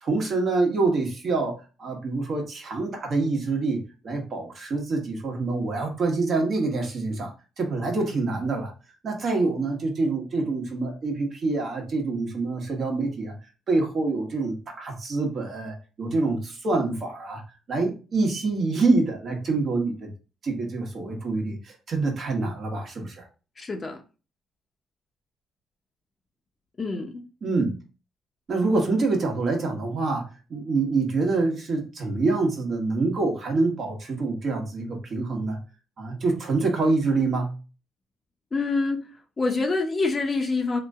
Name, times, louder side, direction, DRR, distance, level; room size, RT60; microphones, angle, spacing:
voice 1, 0.0-7.3 7.6-8.7 9.0-13.3 13.7-17.4 17.7-20.1 20.4-23.3 27.4-27.8 28.5-35.6 36.0-37.6, right 3 dB, 50° right, 1.2 m, -26 dB
voice 2, 23.6-24.0 26.8-27.2 38.5-39.0 39.4-40.8, left 3 dB, 35° left, 0.8 m, -26 dB
2.9 x 2.6 x 3.5 m
cardioid pair, 90°, 0 cm